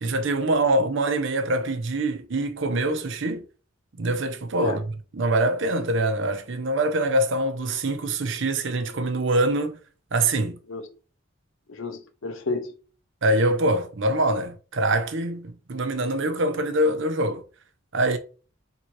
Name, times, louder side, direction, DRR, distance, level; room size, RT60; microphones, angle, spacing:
voice 1, 0.0-3.5 4.0-4.9 5.1-9.8 10.1-10.6 13.2-17.4 17.9-18.2, right 1 dB, 70° right, 0.7 m, -24 dB
voice 2, 11.7-12.8, left 3 dB, 90° left, 0.9 m, -30 dB
3.7 x 2.8 x 4.6 m
head